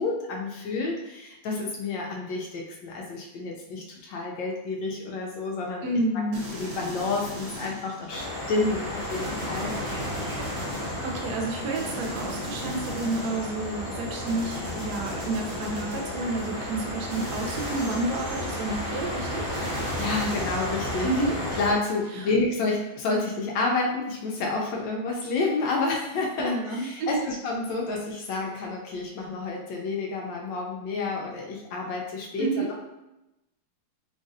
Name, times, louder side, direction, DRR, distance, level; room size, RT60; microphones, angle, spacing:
voice 1, 0.0-5.9 6.5-9.7 11.6-11.7 20.0-21.1 21.5-32.8, left 3 dB, 75° left, -1 dB, 1.2 m, -29 dB
voice 2, 5.8-6.4 10.6-10.7 11.0-19.5 21.0-21.3 26.4-27.2 32.4-32.7, right 2 dB, 70° right, 1 dB, 1.0 m, -30 dB
sound 1, 6.3-8.3 9.1-11.2 11.7-13.7 14.3-16.5 17.1-18.8 19.5-21.2, equal, 90° right, 1.8 m, -38 dB
sound 2, 8.1-21.7, left 1 dB, 60° left, 1.6 m, -33 dB
3.9 x 2.5 x 2.5 m, 0.94 s
omnidirectional pair, 2.1 m